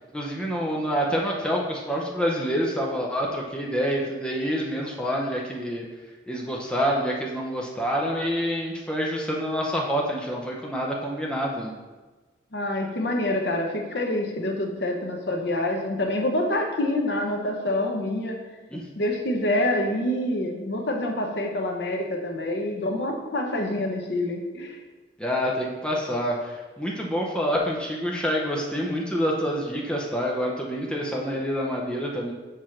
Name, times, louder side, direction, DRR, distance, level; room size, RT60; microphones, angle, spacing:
voice 1, 0.1-5.9 6.3-11.7 18.7-18.9 25.2-32.3, equal, 5° left, -2 dB, 0.7 m, -27 dB
voice 2, 12.5-18.4 18.9-24.8, left 1 dB, 75° left, 2 dB, 0.9 m, -26 dB
4.9 x 4.4 x 5.8 m, 1.3 s
head